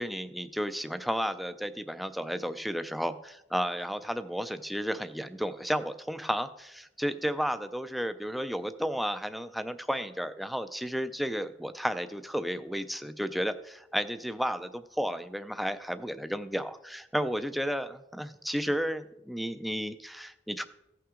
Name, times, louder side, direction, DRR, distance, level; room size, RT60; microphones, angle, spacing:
voice 1, 0.0-20.6, equal, ahead, 10 dB, 0.4 m, -33 dB
15.5 x 5.7 x 3.7 m, 0.86 s
head